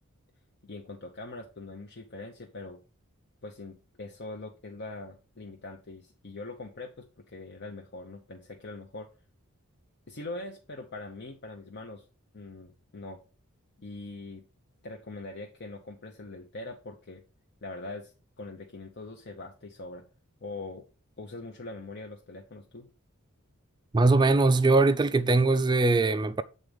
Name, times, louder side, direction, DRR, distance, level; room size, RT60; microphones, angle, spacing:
voice 1, 0.6-2.8 3.4-9.1 10.1-12.0 12.3-13.2 13.8-14.4 14.8-17.2 17.6-20.1 20.4-20.8 21.2-22.9, left 2 dB, 50° left, 0.8 m, -42 dB
voice 2, 23.9-26.4, right 3 dB, 20° right, 0.3 m, -21 dB
7.7 x 3.9 x 5.0 m
head